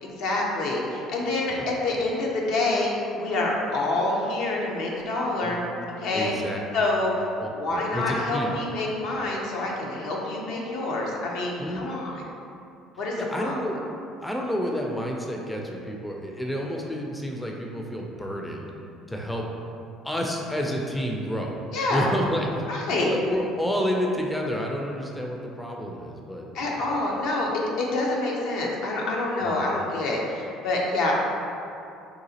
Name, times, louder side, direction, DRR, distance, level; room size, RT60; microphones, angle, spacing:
voice 1, 0.0-5.6 6.0-6.3 6.7-7.3 7.5-12.2 13.0-13.6 21.7-22.1 22.7-23.1 26.5-31.1, left 2 dB, 70° left, -2 dB, 0.6 m, -27 dB
voice 2, 6.1-6.6 7.4-8.6 11.6-12.0 13.2-13.8 14.2-18.7 19.1-19.5 20.0-21.6 21.9-26.9 29.4-29.5, equal, 10° left, 0 dB, 0.4 m, -30 dB
3.9 x 2.4 x 2.7 m, 2.7 s
supercardioid pair, 75°, 0 cm